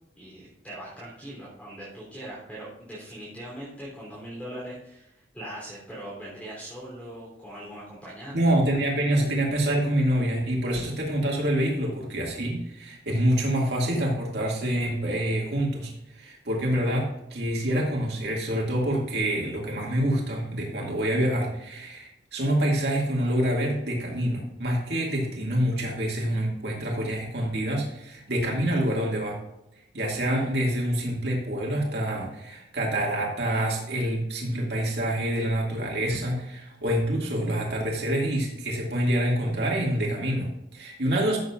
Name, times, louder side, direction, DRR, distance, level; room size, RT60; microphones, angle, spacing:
voice 1, 0.2-8.5, right 1 dB, 10° left, -7 dB, 3.3 m, -41 dB
voice 2, 8.3-29.4 29.9-41.4, right 1 dB, 65° right, -2 dB, 2.2 m, -26 dB
14.0 x 7.3 x 2.5 m, 0.87 s
head